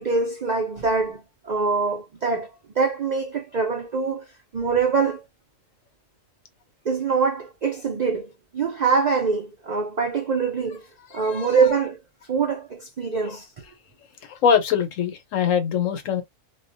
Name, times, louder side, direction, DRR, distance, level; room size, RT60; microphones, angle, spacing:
voice 1, 0.0-2.5 2.8-4.3 4.5-5.3 6.8-10.8 11.1-12.0 12.3-13.5, right 5 dB, 70° right, 0.4 m, -24 dB
voice 2, 11.1-11.6 13.2-13.4 14.2-16.2, left 7 dB, 75° left, 1.0 m, -23 dB
2.3 x 2.1 x 2.6 m
omnidirectional pair, 1.4 m